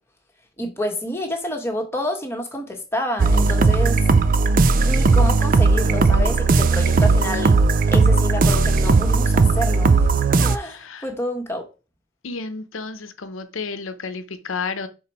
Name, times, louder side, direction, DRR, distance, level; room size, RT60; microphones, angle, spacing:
voice 1, 0.6-4.0 4.8-7.6 7.9-10.1 10.4-11.6, left 1 dB, 10° left, 1.2 m, -28 dB
sound 1, 3.2-10.6, right 3 dB, 40° right, 0.4 m, -17 dB
voice 2, 10.6-11.1 12.2-14.9, left 4 dB, 70° left, 0.8 m, -31 dB
6.0 x 4.3 x 4.3 m
head